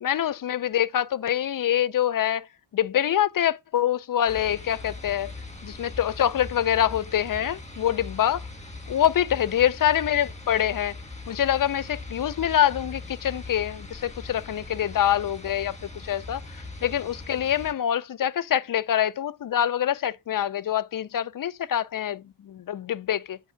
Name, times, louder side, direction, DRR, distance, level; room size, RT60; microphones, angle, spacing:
voice 1, 0.0-2.5 2.7-5.3 5.6-8.4 8.9-10.9 11.3-23.4, left 10 dB, 45° left, 0.4 m, -25 dB
sound 1, 4.3-17.7, left 2 dB, 15° left, 1.5 m, -40 dB
8.1 x 3.3 x 5.6 m
wide cardioid pair, 100°, 46 cm